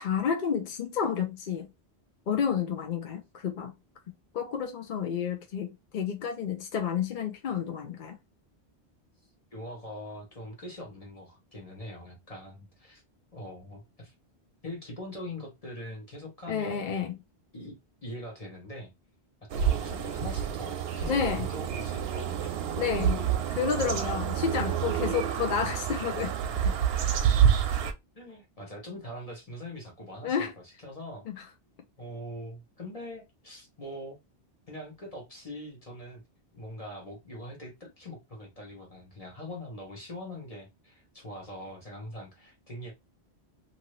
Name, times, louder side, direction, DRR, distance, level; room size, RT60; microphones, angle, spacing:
voice 1, 0.0-1.7 2.3-3.7 4.3-8.1 16.5-17.2 21.1-21.5 22.8-23.3 23.6-26.7 30.2-30.5 31.3-31.4, left 7 dB, 55° left, 0.6 m, -30 dB
voice 2, 9.5-13.0 13.3-14.1 14.6-17.0 17.5-18.9 19.4-22.5 28.2-30.5 30.8-31.5 32.0-34.2 34.7-36.2 36.5-42.9, left 1 dB, 35° left, 0.9 m, -42 dB
sound 1, 19.5-27.9, right 8 dB, 70° right, 0.8 m, -28 dB
2.7 x 2.6 x 3.0 m
omnidirectional pair, 1.1 m